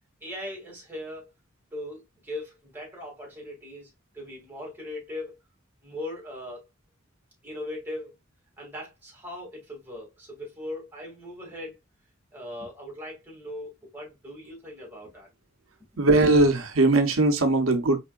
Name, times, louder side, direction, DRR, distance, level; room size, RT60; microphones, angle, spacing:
voice 1, 0.2-1.3 1.7-5.4 5.8-6.7 7.4-8.2 8.6-11.8 12.3-15.3, left 1 dB, 10° right, 2.5 m, -39 dB
voice 2, 16.0-18.0, right 2 dB, 85° right, 1.1 m, -20 dB
4.7 x 4.1 x 2.5 m
head